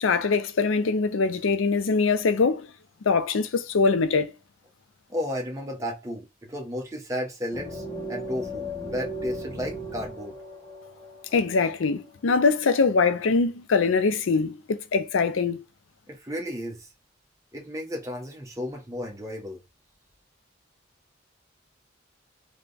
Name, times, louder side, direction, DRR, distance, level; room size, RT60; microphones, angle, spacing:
voice 1, 0.0-2.7 3.1-4.3 11.3-14.6 14.9-15.6, left 4 dB, 85° left, 0.5 m, -23 dB
voice 2, 5.1-10.4 16.1-16.9 17.5-19.6, equal, 15° right, 0.8 m, -33 dB
sound 1, 7.5-12.1, equal, 15° left, 0.8 m, -37 dB
3.4 x 2.2 x 3.8 m
head